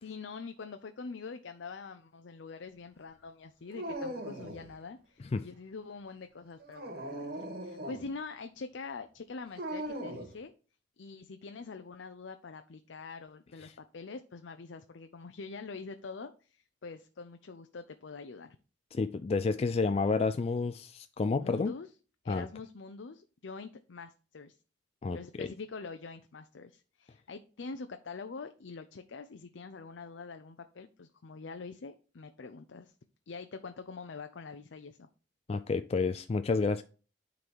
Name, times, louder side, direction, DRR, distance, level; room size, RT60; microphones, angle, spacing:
voice 1, 0.0-7.3 7.6-10.5 11.0-18.6 21.4-21.9 22.2-24.6 25.1-32.9 33.3-35.1, left 4 dB, 85° left, 0.6 m, -45 dB
Dog, 3.7-4.7 6.6-8.1 9.6-10.3, right 1 dB, 55° right, 2.0 m, -39 dB
voice 2, 18.9-21.7 22.3-22.5 25.0-25.5 35.5-36.8, left 4 dB, 35° left, 0.3 m, -30 dB
9.6 x 4.0 x 4.6 m
head